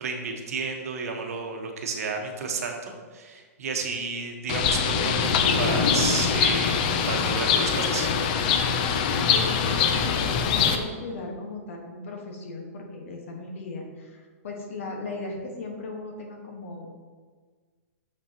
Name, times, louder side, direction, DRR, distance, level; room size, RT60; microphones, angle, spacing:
voice 1, 0.0-8.1, right 4 dB, 75° right, 3 dB, 1.1 m, -32 dB
Bird, 4.5-10.8, left 6 dB, 35° left, 0.4 m, -23 dB
voice 2, 9.1-16.9, left 3 dB, 60° left, 1 dB, 1.3 m, -37 dB
7.0 x 5.6 x 2.9 m, 1.5 s
hypercardioid pair, 170°, 8 cm